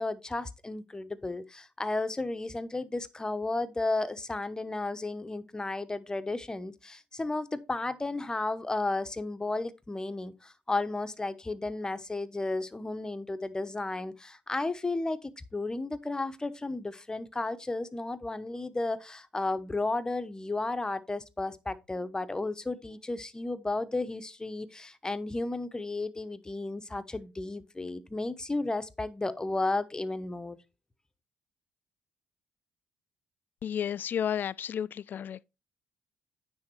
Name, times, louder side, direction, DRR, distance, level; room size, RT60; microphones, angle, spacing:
voice 1, 0.0-30.6, left 2 dB, 20° left, 0.9 m, -33 dB
voice 2, 33.6-35.4, left 9 dB, 50° left, 0.3 m, -32 dB
9.7 x 3.5 x 4.5 m
hypercardioid pair, 55°, 4 cm